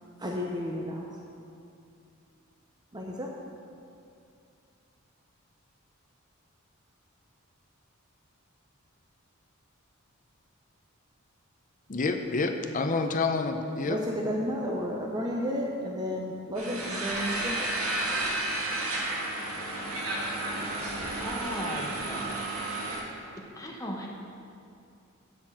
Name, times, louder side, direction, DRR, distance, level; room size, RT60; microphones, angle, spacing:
voice 1, 0.2-1.1 2.9-3.3 13.9-17.7, equal, 20° right, -2 dB, 0.7 m, -32 dB
voice 2, 11.9-14.0, left 3 dB, 40° left, 6 dB, 0.6 m, -28 dB
sound 1, 16.6-23.0, right 2 dB, 80° right, 1.6 m, -32 dB
voice 3, 20.7-22.3 23.4-24.1, left 1 dB, 15° left, -2 dB, 1.1 m, -38 dB
9.7 x 4.3 x 7.3 m, 2.6 s
head